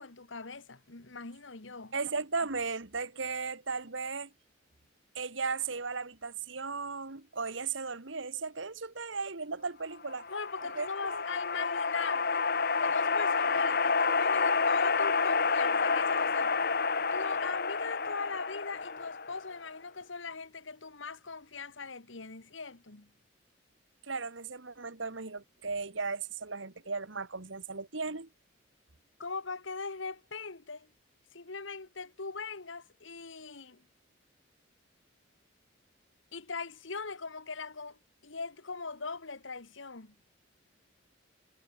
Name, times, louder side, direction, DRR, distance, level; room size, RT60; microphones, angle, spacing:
voice 1, 0.0-1.9 10.3-12.5 12.8-16.6 17.1-23.1 29.2-30.9 31.3-33.8 36.3-40.1, left 4 dB, 70° left, 1.7 m, -40 dB
voice 2, 1.9-4.3 5.2-10.2 10.8-11.2 24.1-28.3, right 4 dB, 70° right, 1.8 m, -36 dB
sound 1, 10.1-19.6, left 4 dB, 50° left, 1.6 m, -29 dB
head